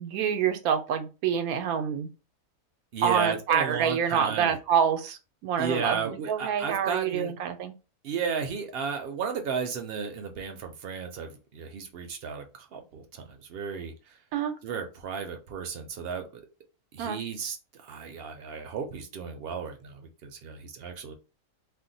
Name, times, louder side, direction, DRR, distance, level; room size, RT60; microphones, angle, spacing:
voice 1, 0.0-2.1 3.0-7.7 14.3-14.5 17.0-17.2, right 7 dB, 85° right, 8 dB, 1.1 m, -27 dB
voice 2, 2.9-4.5 5.6-7.3 8.0-14.2 14.6-16.4 16.9-21.1, right 6 dB, 60° right, 5 dB, 0.6 m, -34 dB
2.6 x 2.1 x 3.8 m, 0.30 s
omnidirectional pair, 1.5 m